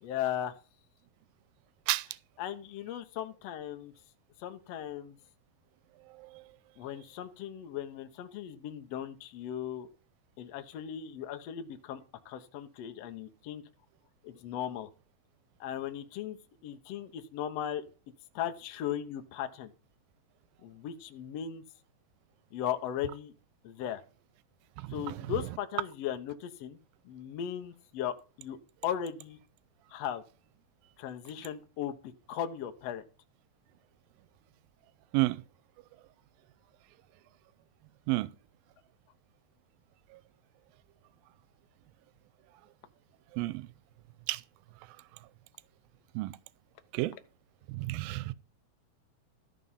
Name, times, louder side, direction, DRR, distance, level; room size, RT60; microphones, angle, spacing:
voice 1, 0.0-0.5 2.4-3.9 4.4-5.2 6.8-9.9 10.4-13.6 14.2-14.9 15.6-17.8 18.3-19.7 20.6-21.6 22.5-23.3 23.6-24.0 24.9-26.8 27.0-29.4 29.9-30.2 31.0-33.0, left 10 dB, 75° left, 1.5 m, -37 dB
voice 2, 24.8-25.4 35.1-35.4 38.1-38.3 43.3-43.7 44.3-44.4 46.2-46.4 46.9-47.1 47.7-48.3, right 19 dB, 80° right, 2.3 m, -31 dB
13.5 x 5.4 x 5.5 m
omnidirectional pair, 4.3 m